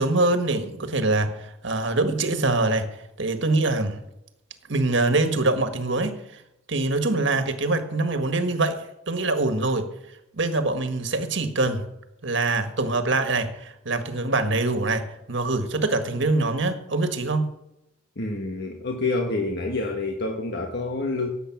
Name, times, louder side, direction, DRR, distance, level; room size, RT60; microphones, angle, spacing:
voice 1, 0.0-2.9 3.2-4.0 4.7-6.4 6.7-9.9 10.3-11.8 12.2-17.5, right 2 dB, 65° right, 8 dB, 1.6 m, -24 dB
voice 2, 18.2-21.3, left 2 dB, 60° left, 3 dB, 1.3 m, -27 dB
17.0 x 8.1 x 6.0 m, 0.86 s
head